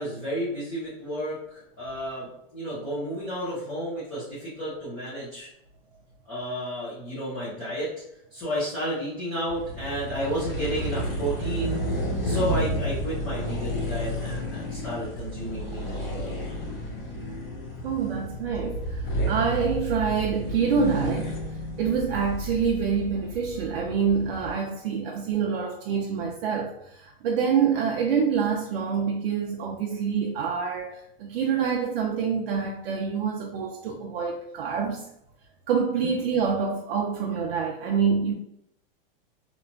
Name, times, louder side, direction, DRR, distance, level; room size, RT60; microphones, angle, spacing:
voice 1, 0.0-5.5 6.3-7.9 8.3-11.8 12.2-16.4 36.0-36.1, equal, 10° left, -12 dB, 0.3 m, -32 dB
sound 1, 9.5-24.5, equal, 75° left, 1.3 m, -31 dB
voice 2, 17.8-21.4 21.8-35.1 35.7-38.3, right 6 dB, 80° right, 1 dB, 0.5 m, -26 dB
2.9 x 2.1 x 2.5 m, 0.76 s
supercardioid pair, 180°, 29 cm